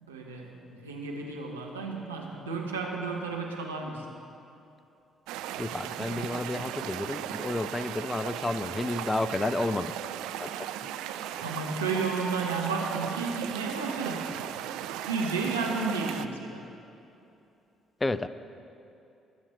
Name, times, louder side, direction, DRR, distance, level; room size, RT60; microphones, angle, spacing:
voice 1, 0.0-4.0 11.4-14.3 15.1-16.6, right 4 dB, 85° right, -1 dB, 1.2 m, -32 dB
sound 1, 5.3-16.3, right 11 dB, 70° right, 0.4 m, -37 dB
voice 2, 5.6-9.9 10.4-10.7 11.4-11.5 18.0-18.3, left 2 dB, 20° left, 14 dB, 0.6 m, -31 dB
20.5 x 7.2 x 4.6 m, 2.8 s
figure-of-eight pair, 45°, 0 cm